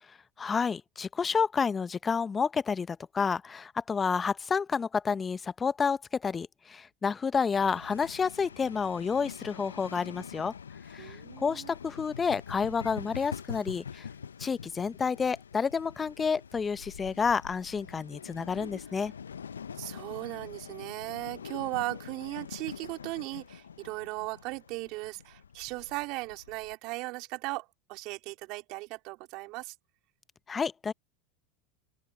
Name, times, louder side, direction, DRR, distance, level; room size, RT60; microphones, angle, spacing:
voice 1, 0.4-10.5 10.9-14.1 14.4-19.1 30.5-30.9, left 5 dB, 25° left, 0.7 m, -30 dB
sound 1, 7.5-26.7, left 7 dB, 85° left, 0.6 m, -45 dB
voice 2, 11.0-11.7 19.7-29.7, right 23 dB, 55° right, 2.9 m, -37 dB
open air
hypercardioid pair, 85°, 0 cm